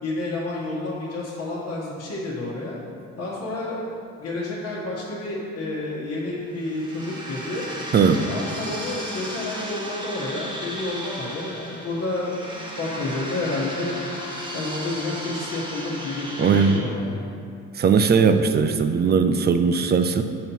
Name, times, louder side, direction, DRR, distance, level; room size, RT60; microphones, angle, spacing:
voice 1, 0.0-2.8 3.2-3.8 4.2-7.7 8.3-12.5 12.8-13.9 14.5-17.3, left 2 dB, 55° left, -6 dB, 1.2 m, -30 dB
sound 1, 6.5-16.8, equal, 15° right, 1.1 m, -35 dB
voice 2, 7.9-8.2 16.4-16.8 17.8-20.2, right 5 dB, 35° right, 8 dB, 0.4 m, -19 dB
7.4 x 2.9 x 5.3 m, 2.4 s
cardioid pair, 90°, 30 cm